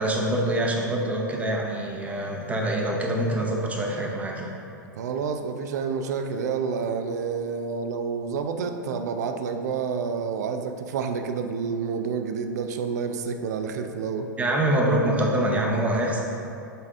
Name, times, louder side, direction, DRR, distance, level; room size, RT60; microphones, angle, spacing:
voice 1, 0.0-4.5 14.4-16.2, right 1 dB, 15° right, -1 dB, 0.9 m, -25 dB
voice 2, 5.0-14.3, right 5 dB, 55° right, 7 dB, 0.5 m, -29 dB
6.8 x 4.7 x 3.6 m, 2.7 s
figure-of-eight pair, 95°, 11 cm